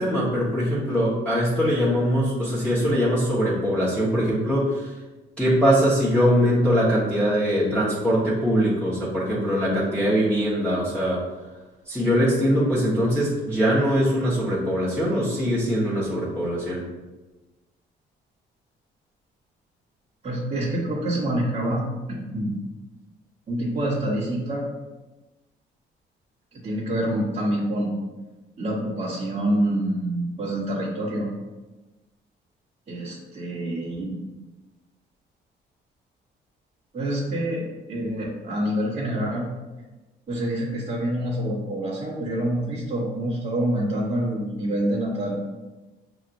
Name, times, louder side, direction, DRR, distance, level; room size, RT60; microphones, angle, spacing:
voice 1, 0.0-4.9 5.4-11.2 11.9-16.8, equal, 5° left, -10 dB, 1.4 m, -22 dB
voice 2, 20.2-21.8 22.1-22.6 23.5-24.6 26.5-27.9 28.6-31.3 32.9-34.2 36.9-39.5 40.3-45.3, right 1 dB, 35° right, -11 dB, 1.4 m, -26 dB
6.3 x 3.0 x 2.6 m, 1.1 s
cardioid pair, 90°, 20 cm